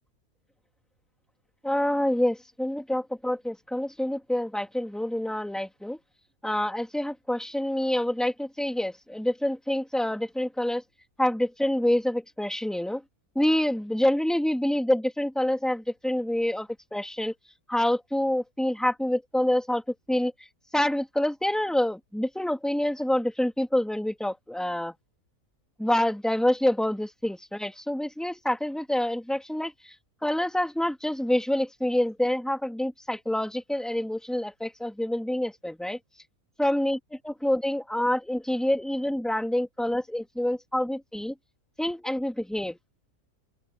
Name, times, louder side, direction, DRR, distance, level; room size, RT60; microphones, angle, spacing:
voice 1, 1.6-6.0 6.4-10.8 11.2-13.0 13.4-17.3 17.7-19.8 20.1-20.3 20.7-24.9 25.8-29.7 30.2-36.0 36.6-37.0 37.2-41.3 41.8-42.8, left 1 dB, ahead, 1.9 m, -27 dB
open air
omnidirectional pair, 1.6 m